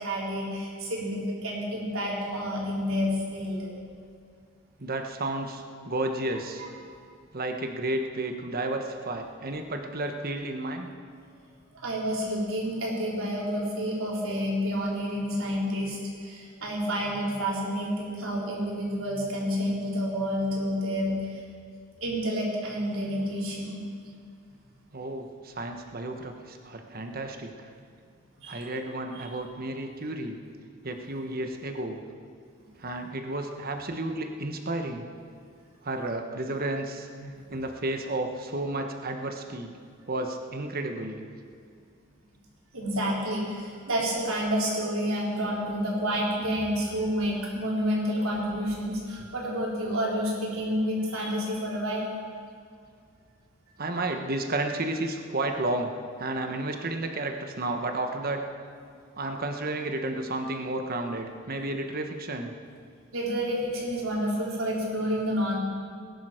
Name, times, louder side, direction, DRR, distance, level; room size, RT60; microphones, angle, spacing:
voice 1, 0.0-3.7 11.8-21.4 22.0-23.8 28.4-28.7 37.2-37.3 42.7-52.1 63.1-65.6, equal, 80° right, -4 dB, 4.1 m, -29 dB
voice 2, 4.8-6.6 7.3-10.9 24.9-27.7 28.5-30.4 30.8-32.0 32.8-35.0 35.8-37.1 37.5-39.7 40.1-41.2 53.8-55.9 56.2-58.4 59.1-62.5, right 2 dB, 45° right, 5 dB, 1.2 m, -32 dB
20.0 x 11.0 x 5.0 m, 2.2 s
head